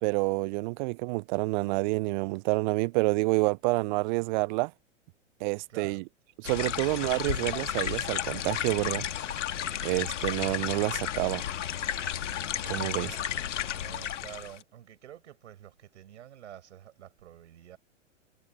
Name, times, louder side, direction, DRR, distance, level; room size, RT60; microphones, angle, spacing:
voice 1, 0.0-4.7 5.4-6.0 6.4-9.0 9.8-11.4 12.6-13.2, right 26 dB, 40° right, 0.7 m, -28 dB
voice 2, 5.7-6.0 13.8-17.8, right 11 dB, 65° right, 5.9 m, -48 dB
sound 1, 6.4-14.6, left 10 dB, 70° left, 2.3 m, -33 dB
hypercardioid pair, 110°, 38 cm